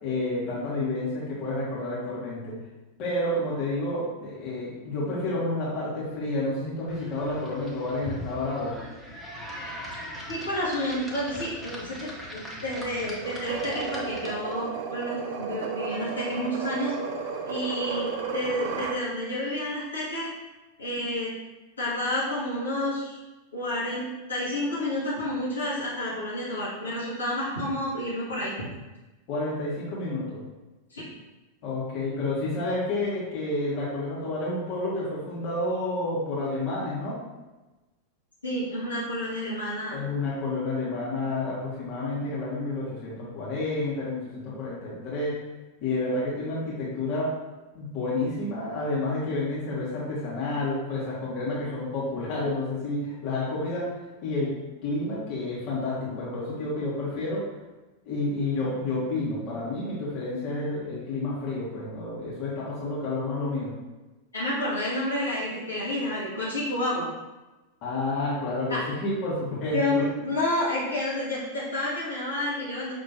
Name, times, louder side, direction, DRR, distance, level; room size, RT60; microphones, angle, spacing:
voice 1, 0.0-2.6 3.0-8.8 29.3-30.4 31.6-37.2 39.9-45.4 45.8-47.3 47.7-53.9 54.2-54.6 54.8-57.5 58.0-63.7 67.8-70.1, left 2 dB, 40° left, -7 dB, 1.4 m, -30 dB
sound 1, 6.9-14.6, equal, 5° right, 0.9 m, -40 dB
voice 2, 10.3-16.9 17.5-20.3 20.8-21.3 21.8-23.2 23.5-28.5 30.9-31.0 38.4-40.0 64.3-67.1 68.7-68.9 69.7-72.9, left 1 dB, 75° left, -9 dB, 1.4 m, -30 dB
sound 2, 13.2-19.0, right 5 dB, 50° right, 0.4 m, -33 dB
5.6 x 2.9 x 2.7 m, 1.1 s
figure-of-eight pair, 90°, 0 cm